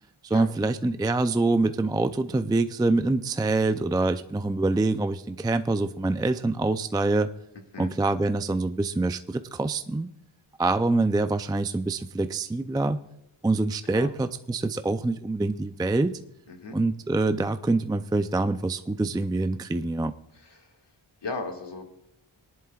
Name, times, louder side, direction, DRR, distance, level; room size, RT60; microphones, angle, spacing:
voice 1, 0.2-7.3 7.8-10.1 10.6-13.0 13.4-16.2 16.7-20.1, right 2 dB, 10° right, 10 dB, 0.4 m, -25 dB
voice 2, 20.3-20.7 21.2-21.8, left 3 dB, 55° left, 2 dB, 1.9 m, -36 dB
20.0 x 11.0 x 2.4 m, 0.81 s
wide cardioid pair, 55°, 49 cm